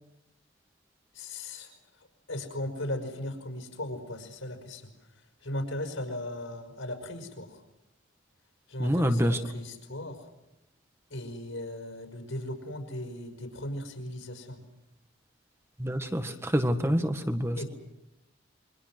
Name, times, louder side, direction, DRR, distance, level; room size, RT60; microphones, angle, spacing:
voice 1, 1.1-7.6 8.7-10.3 11.1-14.6 17.5-17.6, left 1 dB, 80° left, 5 dB, 5.4 m, -37 dB
voice 2, 8.8-9.4 15.8-17.6, equal, 10° right, 7 dB, 1.6 m, -27 dB
28.0 x 24.5 x 6.3 m, 0.92 s
head